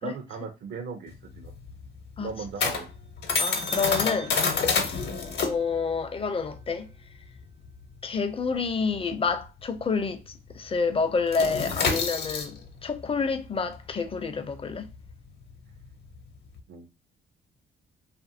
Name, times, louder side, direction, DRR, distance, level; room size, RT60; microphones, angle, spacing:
voice 1, 0.0-1.5 2.2-2.9 16.7-16.9, right 5 dB, 60° right, 0.6 m, -37 dB
sound 1, 1.1-10.0 10.3-10.6 10.9-16.6, left 5 dB, 60° left, 0.8 m, -30 dB
voice 2, 3.4-4.4 4.8-5.0 5.4-6.9 8.0-14.9, left 5 dB, 30° left, 0.5 m, -29 dB
2.7 x 2.5 x 2.6 m
cardioid pair, 90°, 20 cm